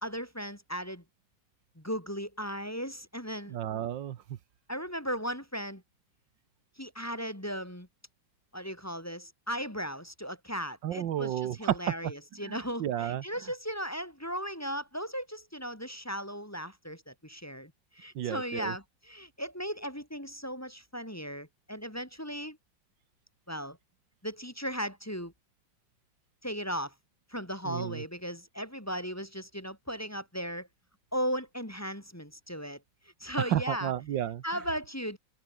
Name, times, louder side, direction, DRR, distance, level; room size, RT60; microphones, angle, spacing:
voice 1, 0.0-1.0 1.8-3.5 4.7-5.8 6.8-7.9 8.5-22.6 23.5-23.8 24.2-25.3 26.4-26.9 27.3-30.7 31.1-32.8 33.2-33.9 34.4-35.2, equal, 10° left, 2.6 m, -37 dB
voice 2, 3.5-4.2 10.8-12.1 12.4-13.2 18.2-18.7 27.6-28.0 33.4-34.4, right 11 dB, 80° right, 1.7 m, -32 dB
open air
omnidirectional pair, 2.0 m